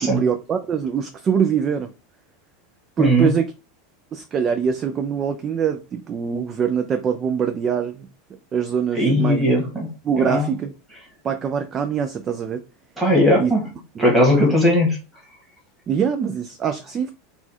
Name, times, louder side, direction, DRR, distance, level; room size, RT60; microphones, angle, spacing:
voice 1, 0.0-1.9 3.0-3.5 4.1-8.1 8.5-9.5 10.0-10.7 11.2-12.6 13.4-13.5 14.0-14.1 14.3-14.5 15.9-17.1, right 7 dB, 20° right, 0.3 m, -23 dB
voice 2, 3.0-3.3 8.9-9.9 10.2-10.5 13.0-13.6 14.0-15.0, equal, 5° right, 1.5 m, -18 dB
4.2 x 2.3 x 4.2 m
supercardioid pair, 170°, 0 cm